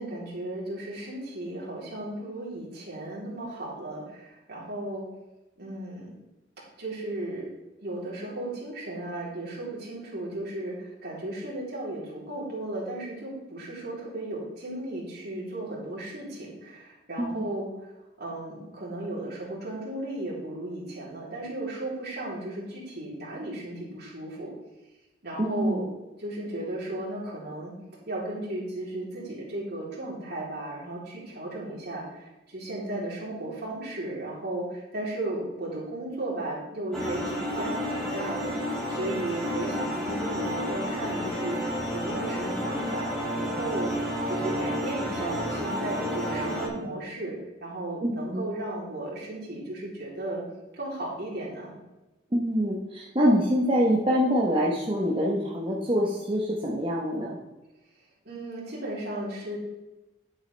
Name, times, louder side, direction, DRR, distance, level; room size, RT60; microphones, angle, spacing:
voice 1, 0.0-5.1 5.6-6.1 6.8-7.5 7.8-17.7 18.2-24.5 25.2-25.8 26.2-27.7 28.1-50.4 50.7-51.7 58.3-59.6, right 1 dB, 60° right, -5 dB, 3.6 m, -35 dB
voice 2, 17.2-17.5 25.4-25.8 48.0-48.5 52.3-57.4, equal, 30° right, -4 dB, 1.1 m, -25 dB
sound 1, 36.9-46.7, equal, 5° left, 3.2 m, -31 dB
10.5 x 8.3 x 3.4 m, 1.0 s
head